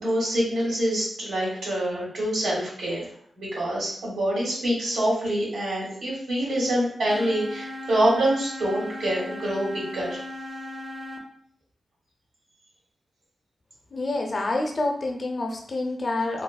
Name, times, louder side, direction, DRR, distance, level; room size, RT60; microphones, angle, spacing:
voice 1, 0.0-3.1 3.4-10.2, right 1 dB, 85° right, -5 dB, 1.1 m, -26 dB
sound 1, 7.1-11.2, left 1 dB, 30° right, 0.5 m, -37 dB
voice 2, 13.9-16.4, left 2 dB, 50° left, 2 dB, 0.5 m, -27 dB
3.0 x 2.0 x 2.3 m, 0.62 s
cardioid pair, 75°, 0 cm